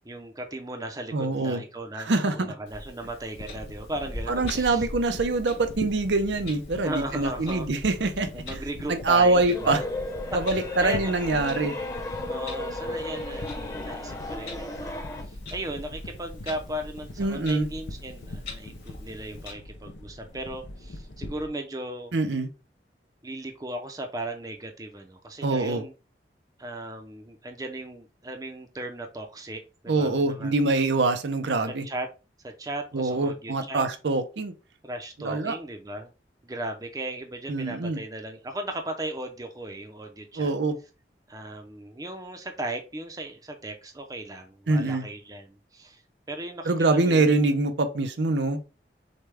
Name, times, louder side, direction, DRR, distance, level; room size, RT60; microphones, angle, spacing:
voice 1, 0.0-4.9 6.8-7.7 8.3-9.9 10.3-11.1 12.3-22.1 23.2-25.9 26.6-30.5 31.7-32.1 32.4-33.8 34.8-36.1 36.4-40.5 41.3-46.0 46.3-47.4, right 1 dB, 20° right, 0.6 m, -36 dB
voice 2, 1.1-1.6 2.1-2.4 4.3-8.4 8.9-9.8 10.3-11.7 17.2-17.7 22.1-22.5 25.4-25.8 29.9-31.8 32.9-34.5 35.2-35.5 37.5-38.0 40.4-40.8 44.7-45.1 46.7-48.6, right 3 dB, 80° right, 0.6 m, -24 dB
Clock, 2.7-19.5, left 2 dB, 65° left, 2.4 m, -44 dB
sound 1, 3.3-21.5, left 1 dB, 80° left, 0.7 m, -42 dB
sound 2, 9.5-15.2, left 2 dB, 20° left, 0.9 m, -34 dB
6.4 x 2.3 x 3.4 m
head